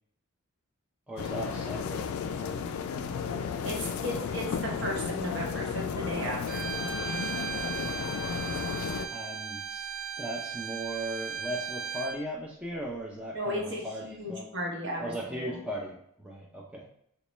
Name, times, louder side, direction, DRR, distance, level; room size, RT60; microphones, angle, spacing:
voice 1, 1.1-2.9 9.1-9.9 10.2-14.4 15.0-16.9, right 1 dB, 5° right, -3 dB, 0.4 m, -38 dB
sound 1, 1.2-9.1, left 6 dB, 75° left, 0.3 m, -33 dB
voice 2, 3.6-6.7 13.3-15.6, equal, 55° right, -2 dB, 0.9 m, -35 dB
Bowed string instrument, 6.5-12.2, right 7 dB, 85° right, 0.5 m, -37 dB
4.1 x 2.2 x 3.0 m, 0.70 s
head